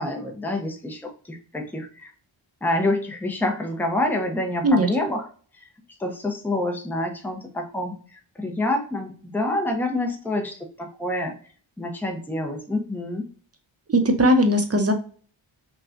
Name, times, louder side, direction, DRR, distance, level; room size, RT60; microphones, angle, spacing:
voice 1, 0.0-2.1 2.6-5.3 5.5-5.6 6.0-11.4 11.8-13.3, left 1 dB, 5° left, 3 dB, 0.7 m, -27 dB
voice 2, 13.9-14.9, equal, 30° right, 6 dB, 0.7 m, -18 dB
5.8 x 2.3 x 2.5 m, 0.42 s
wide cardioid pair, 75°, 48 cm